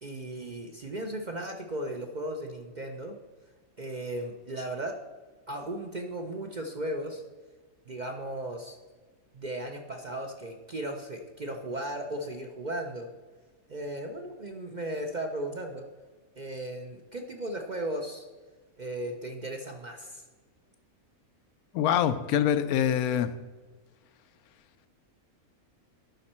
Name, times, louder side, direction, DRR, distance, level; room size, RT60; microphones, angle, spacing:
voice 1, 0.0-3.2 3.8-4.9 5.5-7.2 7.9-8.8 9.3-13.1 13.7-15.9 16.4-18.3 18.8-20.2, right 1 dB, 45° right, 3 dB, 0.6 m, -36 dB
voice 2, 21.7-23.3, left 9 dB, 85° left, 12 dB, 1.1 m, -25 dB
12.0 x 5.3 x 4.3 m, 1.4 s
omnidirectional pair, 1.5 m